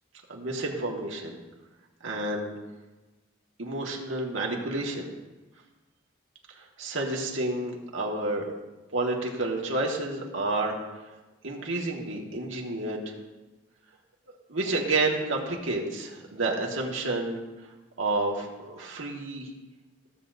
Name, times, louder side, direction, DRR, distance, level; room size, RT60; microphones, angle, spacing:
voice 1, 0.3-1.4 2.0-2.6 3.6-5.1 6.6-8.5 8.9-10.8 11.4-13.0 14.5-17.4 18.0-19.5, right 2 dB, 80° right, -1 dB, 1.6 m, -30 dB
15.5 x 7.7 x 2.6 m, 1.1 s
head